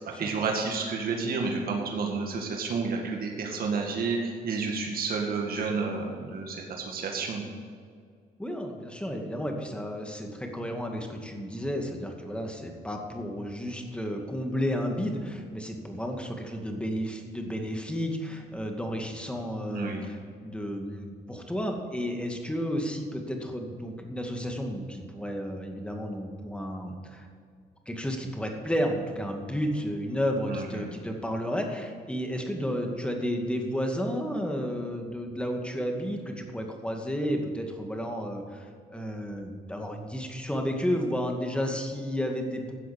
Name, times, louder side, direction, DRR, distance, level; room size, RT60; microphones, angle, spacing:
voice 1, 0.0-7.5 19.7-20.1 30.5-30.9, right 4 dB, 65° right, 1 dB, 2.0 m, -30 dB
voice 2, 8.4-27.3 27.9-42.7, equal, 5° left, 2 dB, 2.2 m, -32 dB
12.5 x 7.6 x 7.5 m, 2.1 s
cardioid pair, 80°, 17 cm